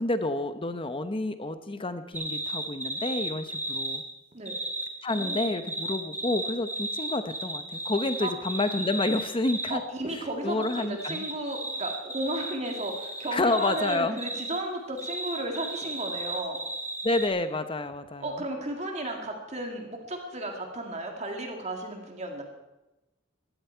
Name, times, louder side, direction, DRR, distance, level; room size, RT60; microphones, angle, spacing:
voice 1, 0.0-4.0 5.0-9.8 10.4-11.2 13.3-14.2 17.0-18.4, left 2 dB, 25° left, 10 dB, 0.8 m, -29 dB
sound 1, 2.1-4.0 4.5-9.7 10.6-14.6 15.0-17.3, right 1 dB, 10° right, 3.6 m, -34 dB
voice 2, 5.1-5.4 8.2-8.3 9.7-16.6 18.2-22.4, right 1 dB, 35° right, 2 dB, 2.1 m, -34 dB
16.5 x 12.0 x 4.5 m, 1.0 s
head